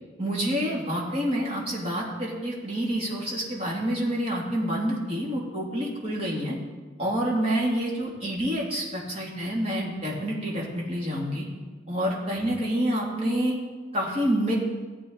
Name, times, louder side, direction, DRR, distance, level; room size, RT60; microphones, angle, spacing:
voice 1, 0.2-6.6 7.0-11.4 11.9-13.5 13.9-14.5, equal, 35° right, -4 dB, 2.8 m, -28 dB
15.5 x 8.3 x 4.1 m, 1.4 s
head